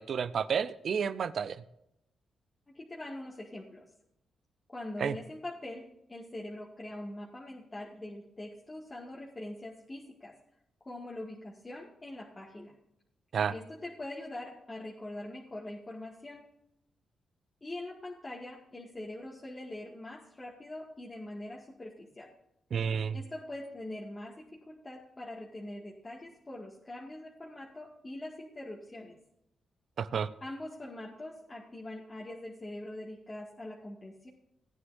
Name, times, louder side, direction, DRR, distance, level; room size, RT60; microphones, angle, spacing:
voice 1, 0.0-1.6 5.0-5.1 13.3-13.5 22.7-23.2 30.0-30.3, right 7 dB, 65° right, 14 dB, 0.6 m, -31 dB
voice 2, 2.7-3.8 4.7-10.3 10.8-12.7 13.5-16.4 17.6-22.3 23.1-29.2 30.4-34.3, left 1 dB, 25° left, -3 dB, 2.0 m, -43 dB
17.5 x 9.4 x 2.6 m, 0.81 s
cardioid pair, 80°, 0 cm